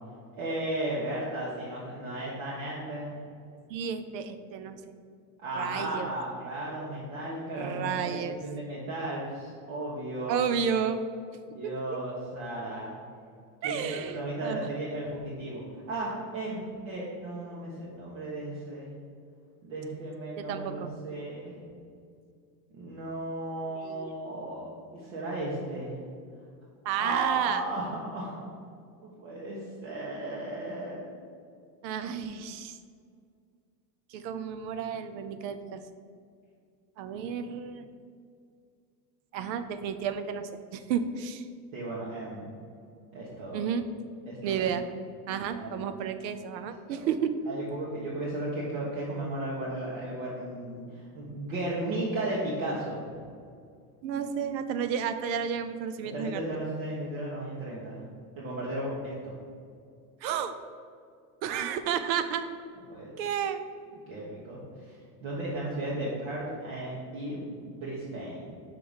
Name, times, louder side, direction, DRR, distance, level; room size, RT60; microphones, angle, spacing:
voice 1, 0.4-3.2 5.4-10.4 11.5-12.9 13.6-18.9 19.6-21.5 22.7-26.0 27.0-28.4 29.0-31.0 41.7-42.5 43.1-43.6 44.3-44.7 45.6-45.8 46.9-47.0 47.5-53.1 56.0-58.0 58.4-59.4 62.9-63.1 64.1-68.5, right 1 dB, 55° right, -6 dB, 1.3 m, -35 dB
voice 2, 3.7-4.8 5.5-6.1 7.5-8.4 10.3-11.0 11.6-11.7 13.6-14.6 20.4-20.9 23.8-24.2 26.9-27.6 31.8-32.8 34.1-35.8 37.0-37.8 39.3-41.5 43.5-43.8 44.4-44.9 45.3-47.3 54.0-56.4 60.2-60.6 61.4-62.5 63.2-63.6, right 8 dB, 85° right, 10 dB, 0.7 m, -31 dB
5.7 x 3.9 x 5.1 m, 2.2 s
supercardioid pair, 140°, 50 cm